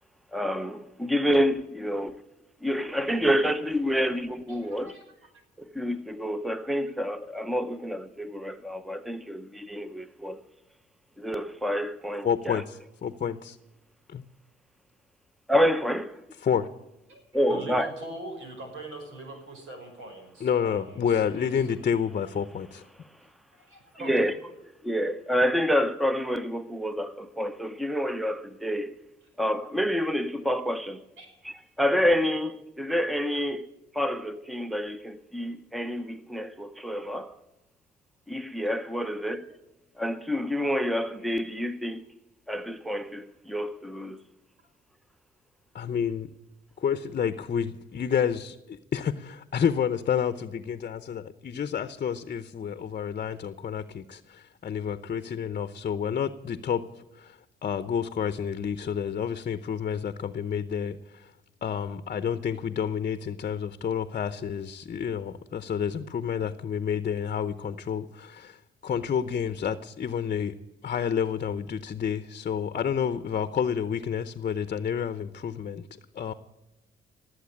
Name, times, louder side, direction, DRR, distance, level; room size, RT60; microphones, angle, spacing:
voice 1, 0.3-2.2 2.6-5.0 5.7-10.4 11.2-12.6 15.5-16.2 17.3-17.9 24.0-24.3 24.8-28.9 29.4-31.0 31.4-37.3 38.3-39.5 40.0-42.1 42.5-44.2, equal, ahead, 0.8 m, -28 dB
voice 2, 4.5-5.0 17.1-17.2 17.5-21.6 23.5-24.3 31.2-31.3, right 2 dB, 90° right, 5.5 m, -42 dB
voice 3, 12.2-13.5 14.1-14.2 16.4-16.6 20.4-22.8 45.7-46.3 46.8-56.8 57.1-61.3 61.6-70.5 70.8-76.3, left 7 dB, 45° left, 0.8 m, -29 dB
18.5 x 8.0 x 8.5 m
cardioid pair, 90°, 20 cm